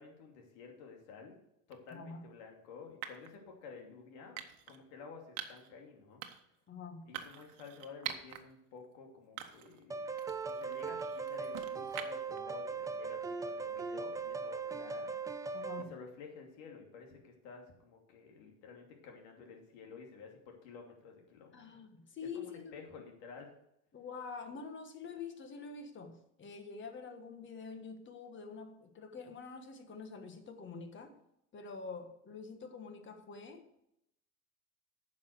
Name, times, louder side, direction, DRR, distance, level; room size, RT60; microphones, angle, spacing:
voice 1, 0.0-1.4 1.7-4.4 4.7-6.3 7.1-10.2 10.4-15.2 15.8-21.8 22.3-23.5, left 5 dB, 75° left, 2 dB, 2.8 m, -52 dB
sound 1, 1.7-1.9 3.0-3.3 4.4-4.8 5.4-5.7 6.2-6.6 7.1-8.4 8.8-8.9 9.4-9.8 10.2-12.4, right 11 dB, 65° right, 1.3 m, -45 dB
voice 2, 1.9-2.3 6.7-7.1 15.5-15.9 21.5-22.8 23.9-31.2 31.5-33.9, left 5 dB, 30° left, 8 dB, 1.5 m, -46 dB
sound 2, 9.9-15.8, right 4 dB, 10° right, 0.4 m, -39 dB
9.6 x 6.2 x 6.6 m, 0.82 s
supercardioid pair, 125°, 39 cm